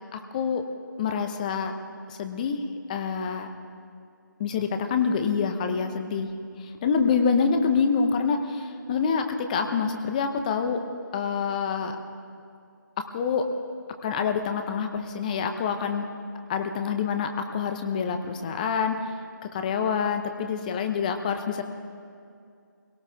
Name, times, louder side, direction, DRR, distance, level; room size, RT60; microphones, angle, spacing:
voice 1, 0.1-0.6 1.0-1.7 2.1-2.6 2.9-3.5 4.4-6.3 6.6-10.8 11.1-12.0 13.1-13.5 14.0-16.1 16.5-19.1 19.4-21.6, left 6 dB, 25° left, 6 dB, 0.8 m, -26 dB
23.0 x 17.5 x 3.5 m, 2.4 s
figure-of-eight pair, 150°, 11 cm